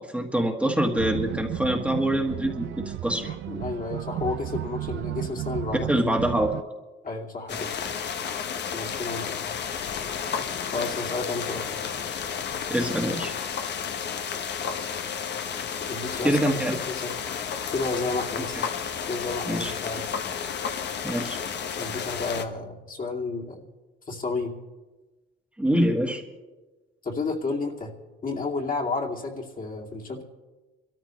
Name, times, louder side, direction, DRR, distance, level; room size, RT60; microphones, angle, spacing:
voice 1, 0.0-3.3 5.9-6.6 12.7-13.3 16.2-16.8 18.5-18.6 19.4-19.7 21.0-21.4 25.6-26.2, right 1 dB, 5° right, 0 dB, 1.6 m, -25 dB
sound 1, 1.0-6.6, right 13 dB, 70° right, 0.5 m, -33 dB
voice 2, 3.2-5.9 7.0-7.7 8.7-9.3 10.6-11.7 15.9-17.3 17.7-18.7 19.1-20.0 21.8-23.7 24.1-24.5 27.0-27.9 28.2-30.2, left 3 dB, 45° left, -1 dB, 2.5 m, -31 dB
sound 2, 7.5-22.4, left 7 dB, 60° left, 1.0 m, -32 dB
26.0 x 13.5 x 3.2 m, 1.2 s
cardioid pair, 90°, 20 cm